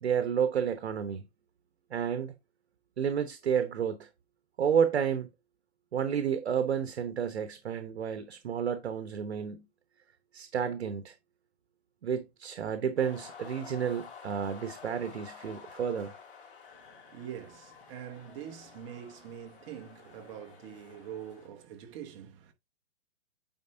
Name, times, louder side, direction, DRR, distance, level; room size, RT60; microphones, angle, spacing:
voice 1, 0.0-1.2 1.9-2.3 3.0-4.1 4.6-5.3 5.9-9.6 10.3-11.1 12.0-16.1, right 7 dB, 75° right, 1.1 m, -31 dB
sound 1, 13.0-21.5, left 6 dB, 50° left, 2.7 m, -51 dB
voice 2, 16.7-22.5, right 9 dB, 30° right, 1.1 m, -44 dB
9.3 x 4.5 x 2.7 m
hypercardioid pair, 150°, 33 cm